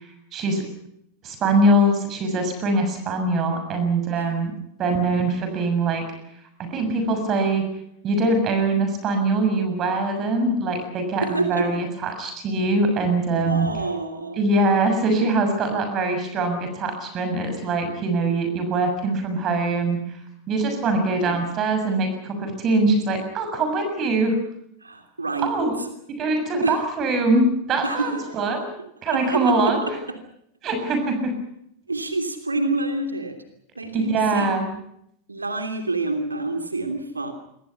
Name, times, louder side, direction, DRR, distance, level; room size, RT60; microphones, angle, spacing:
voice 1, 0.3-0.6 1.2-4.5 4.8-6.0 6.6-7.6 8.0-13.7 14.4-20.0 20.5-24.4 25.4-25.7 26.2-28.7 29.0-29.9 30.6-31.3 33.9-34.7, right 2 dB, 30° right, 6 dB, 6.7 m, -22 dB
voice 2, 11.2-11.8 13.4-14.4 21.2-21.4 24.8-25.9 26.6-26.8 27.8-28.4 29.1-30.2 31.9-33.4 33.7-34.7 35.3-37.3, right 3 dB, 80° right, 6 dB, 2.9 m, -28 dB
27.5 x 23.5 x 5.8 m, 0.73 s
figure-of-eight pair, 90°, 0 cm